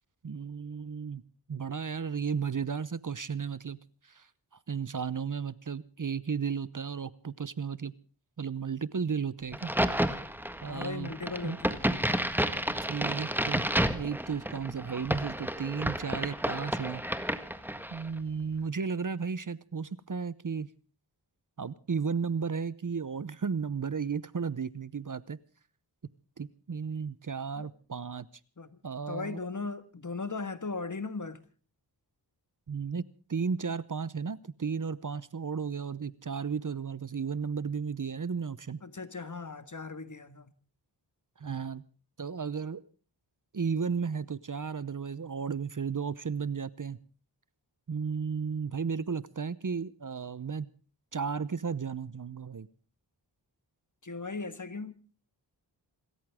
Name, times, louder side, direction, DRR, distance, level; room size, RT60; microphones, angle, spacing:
voice 1, 0.2-1.2 1.5-3.8 4.0-4.3 4.7-7.9 8.4-9.7 10.6-11.1 11.4-11.6 12.8-13.6 13.9-17.0 17.9-20.7 21.6-25.4 26.4-28.3 28.8-29.4 32.7-38.8 41.4-41.8 42.2-42.8 43.5-47.0 47.9-50.7 51.1-52.7, right 6 dB, 45° right, 0.8 m, -34 dB
Crack, 9.5-18.1, equal, 5° right, 1.6 m, -31 dB
voice 2, 10.7-11.9 27.6-27.7 28.6-28.8 29.1-31.4 38.8-40.5 54.0-55.0, left 4 dB, 40° left, 1.7 m, -38 dB
27.5 x 14.0 x 3.6 m
wide cardioid pair, 65°, 44 cm